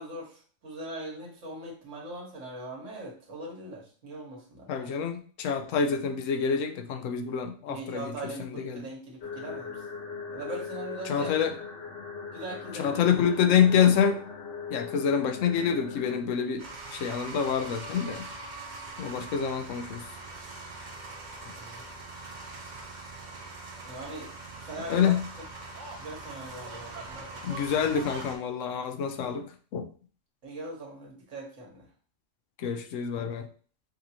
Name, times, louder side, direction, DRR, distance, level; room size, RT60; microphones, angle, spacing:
voice 1, 0.0-4.9 7.7-9.8 10.3-11.4 12.3-13.5 21.5-21.8 23.8-24.3 24.6-25.1 26.0-27.4 27.7-28.2 30.4-31.9, right 1 dB, 70° right, 1.7 m, -41 dB
voice 2, 4.7-8.1 8.5-8.9 11.0-11.6 12.7-14.2 14.7-16.7 16.9-18.2 19.0-20.1 24.9-25.2 27.4-29.8 32.6-33.5, left 7 dB, 75° left, 1.0 m, -27 dB
sound 1, 9.2-16.2, left 5 dB, 60° left, 1.3 m, -40 dB
sound 2, 16.6-28.4, right 3 dB, 40° right, 0.8 m, -42 dB
5.3 x 2.6 x 2.8 m
omnidirectional pair, 1.3 m